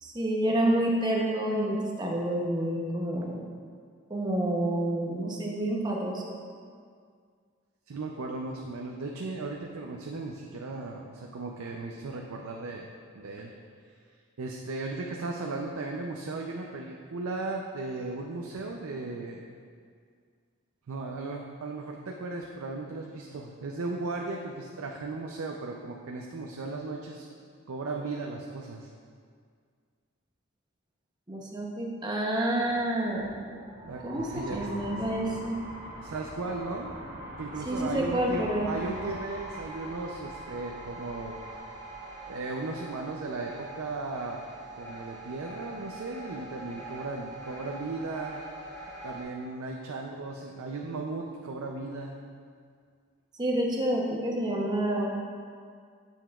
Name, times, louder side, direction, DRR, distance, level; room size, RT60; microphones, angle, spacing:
voice 1, 0.0-3.4 4.1-6.2 31.3-33.3 34.0-35.6 37.7-38.7 53.4-55.1, right 1 dB, 20° right, -2 dB, 0.8 m, -28 dB
voice 2, 7.9-12.9 13.1-13.5 14.4-19.4 20.9-27.3 27.7-28.9 33.8-35.2 36.0-36.9 37.4-41.4 42.3-44.4 44.7-48.4 49.0-52.2, right 3 dB, 80° right, 1 dB, 0.5 m, -36 dB
sound 1, 32.4-43.3, equal, 40° right, 1.4 m, -43 dB
sound 2, 38.7-49.2, right 2 dB, 10° left, 1.3 m, -44 dB
8.8 x 7.2 x 2.4 m, 2.1 s
head